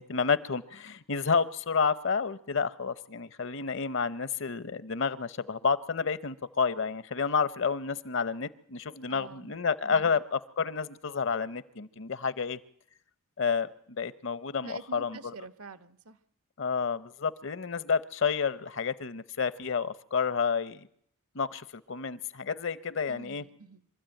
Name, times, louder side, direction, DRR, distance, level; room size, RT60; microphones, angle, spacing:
voice 1, 0.0-12.6 13.4-13.7 14.0-15.3 16.6-20.9 21.3-23.4, left 5 dB, 60° left, 15 dB, 0.8 m, -30 dB
voice 2, 9.1-9.6 9.8-10.2 14.6-16.2 23.1-23.9, right 4 dB, 80° right, 13 dB, 1.0 m, -47 dB
24.5 x 13.5 x 9.0 m, 0.69 s
head